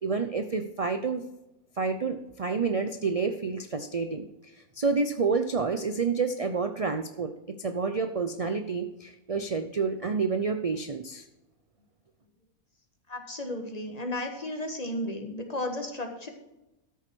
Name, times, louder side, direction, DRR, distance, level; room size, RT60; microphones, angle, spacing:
voice 1, 0.0-1.2 1.8-4.3 4.8-11.2, right 4 dB, 50° right, 7 dB, 0.4 m, -29 dB
voice 2, 13.1-16.3, left 1 dB, 25° left, 4 dB, 1.5 m, -34 dB
13.5 x 7.0 x 4.6 m, 0.93 s
omnidirectional pair, 1.6 m